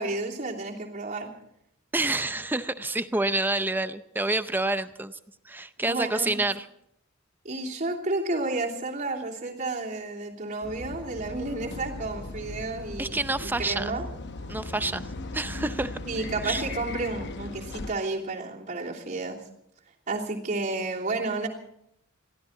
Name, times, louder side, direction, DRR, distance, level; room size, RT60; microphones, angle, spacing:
voice 1, 0.0-1.3 5.8-6.4 7.4-14.0 16.0-19.4 20.1-21.5, right 2 dB, 40° right, -3 dB, 3.0 m, -31 dB
voice 2, 1.9-5.2 5.4-6.7 13.0-13.9 14.5-16.0 16.4-16.7, right 2 dB, 10° right, 11 dB, 0.6 m, -28 dB
sound 1, 10.6-17.9, left 2 dB, 55° left, 0.9 m, -38 dB
22.0 x 15.5 x 3.9 m, 0.76 s
head